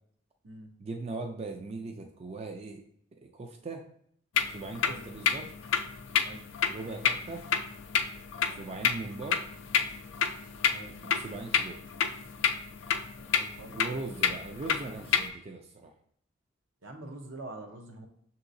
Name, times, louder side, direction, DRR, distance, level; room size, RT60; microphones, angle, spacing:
voice 1, 0.8-2.8 3.2-3.9 4.5-5.5 6.7-7.5 8.5-9.5 11.0-11.8 13.7-15.9, right 3 dB, 35° right, 3 dB, 0.4 m, -39 dB
sound 1, 4.4-15.3, left 7 dB, 70° left, 0.4 m, -30 dB
voice 2, 8.4-8.7 10.7-11.0 13.2-13.9 16.8-18.1, right 2 dB, 75° right, 3 dB, 0.8 m, -45 dB
6.2 x 2.8 x 2.6 m, 0.67 s
head